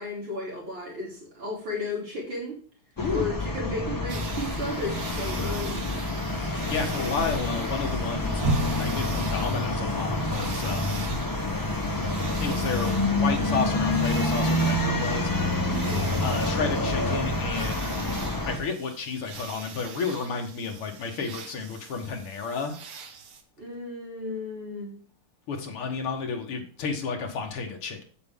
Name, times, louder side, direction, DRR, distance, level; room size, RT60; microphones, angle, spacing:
voice 1, 0.0-2.6 3.1-5.9 15.7-16.1 23.6-25.0, left 2 dB, 65° right, -4 dB, 3.7 m, -34 dB
voice 2, 3.0-3.3 6.3-8.4 8.8-11.0 12.4-15.7 16.2-18.2 18.5-22.8 25.5-28.0, left 5 dB, 80° left, 3 dB, 2.4 m, -32 dB
sound 1, 3.0-18.6, left 2 dB, 25° left, 0.4 m, -27 dB
sound 2, 4.1-23.4, right 6 dB, 80° right, 2.1 m, -40 dB
sound 3, 8.4-16.5 17.0-17.1, left 3 dB, 15° right, 3.6 m, -39 dB
8.4 x 7.8 x 3.6 m, 0.43 s
omnidirectional pair, 2.4 m